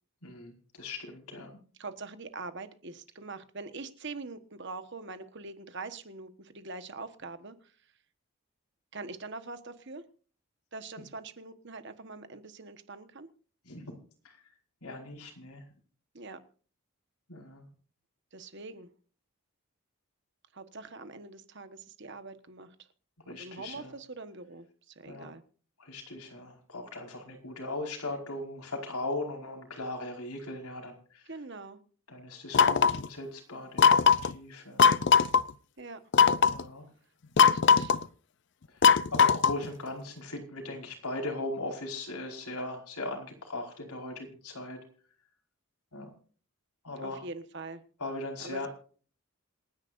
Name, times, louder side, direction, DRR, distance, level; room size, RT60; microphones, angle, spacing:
voice 1, 0.2-1.5 13.6-14.0 14.2-14.4 14.8-15.6 17.3-17.6 23.3-23.9 25.1-25.3 25.8-31.2 32.1-34.9 36.5-36.8 39.1-44.8 45.9-46.1 46.8-47.2 48.0-48.7, left 2 dB, 90° left, 1 dB, 5.0 m, -39 dB
voice 2, 1.8-7.5 8.9-10.0 10.7-13.3 16.1-16.4 18.3-18.9 20.5-22.7 23.4-24.7 24.9-25.4 31.3-31.8 35.8-36.0 37.4-37.9 47.0-47.8 48.4-48.7, right 3 dB, 50° right, 10 dB, 1.3 m, -43 dB
sound 1, 32.5-33.1 33.8-34.3 34.8-35.4 36.1-36.6 37.4-38.0 38.8-39.7, left 6 dB, 50° left, 0.5 m, -20 dB
27.5 x 10.0 x 2.6 m, 0.42 s
head